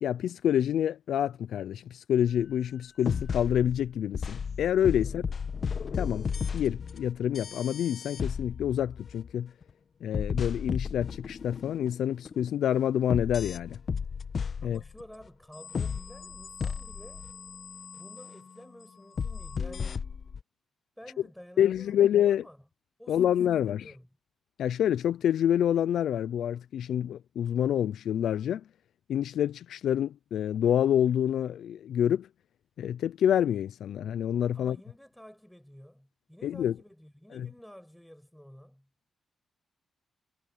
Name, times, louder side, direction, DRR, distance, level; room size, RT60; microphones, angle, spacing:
voice 1, 0.0-5.2 5.9-9.5 10.0-13.8 14.6-14.8 21.6-22.4 23.1-23.9 24.6-28.6 29.1-32.3 32.8-34.8 36.4-36.8 37.3-37.5, left 10 dB, 75° left, 0.7 m, -27 dB
sound 1, 2.3-2.4 3.1-9.7 10.1-12.0 12.2-12.7 13.1-15.0 15.5-18.3 19.2-20.4, left 6 dB, 55° left, 1.4 m, -34 dB
voice 2, 14.6-17.3 18.0-20.0 21.0-22.6 23.0-24.1 34.5-38.9, equal, 5° left, 7.4 m, -51 dB
supercardioid pair, 45°, 0 cm